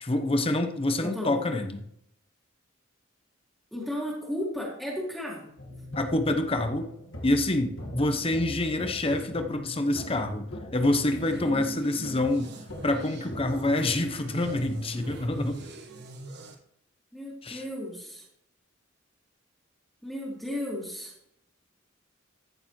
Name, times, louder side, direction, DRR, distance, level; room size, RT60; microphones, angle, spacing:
voice 1, 0.0-1.8 5.9-6.9 7.2-10.5 10.7-12.5 12.8-15.6 17.4-17.6, left 1 dB, 30° left, 7 dB, 0.9 m, -27 dB
voice 2, 1.0-1.4 3.7-5.5 17.1-18.2 20.0-21.1, left 1 dB, ahead, -5 dB, 2.2 m, -34 dB
sound 1, 5.6-15.6, left 1 dB, 80° left, 1.9 m, -42 dB
sound 2, 11.1-16.6, right 1 dB, 60° right, 1.5 m, -42 dB
14.5 x 6.7 x 3.2 m, 0.73 s
head